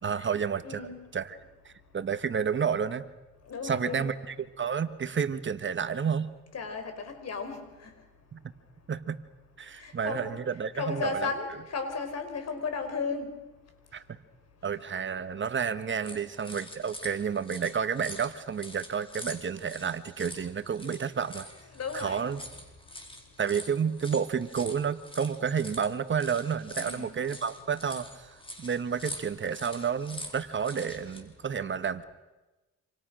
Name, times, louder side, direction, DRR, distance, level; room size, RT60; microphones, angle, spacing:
voice 1, 0.0-0.8 1.1-1.4 1.6-3.1 3.6-6.3 8.3-8.4 8.9-9.2 9.6-11.3 13.9-14.2 14.6-21.5 21.9-22.4 23.4-32.0, right 7 dB, 40° right, 12 dB, 1.3 m, -30 dB
voice 2, 0.6-1.0 3.5-4.1 6.5-7.9 9.8-10.4 10.7-13.3 21.7-22.3 26.8-27.2, left 4 dB, 55° left, 7 dB, 5.3 m, -35 dB
sound 1, 16.0-31.2, left 1 dB, 15° left, 4.8 m, -45 dB
27.0 x 27.0 x 6.4 m, 1.1 s
cardioid pair, 90°, 30 cm